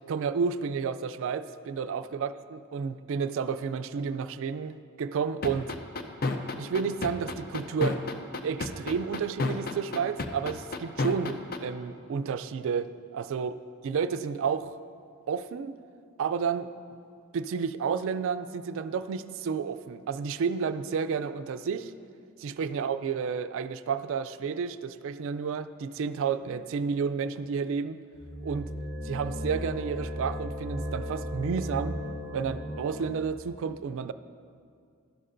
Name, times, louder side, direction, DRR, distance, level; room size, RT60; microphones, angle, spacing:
voice 1, 0.1-5.7 6.6-8.0 8.4-13.5 13.8-14.7 15.3-15.8 16.2-16.7 17.3-21.9 22.4-28.0 28.4-28.7 29.0-32.0 32.3-34.1, right 6 dB, 65° right, 12 dB, 0.3 m, -31 dB
sound 1, 5.4-11.6, left 3 dB, 45° left, 0.6 m, -29 dB
sound 2, 28.2-33.3, equal, ahead, 1.5 m, -36 dB
12.0 x 11.0 x 2.6 m, 2.3 s
head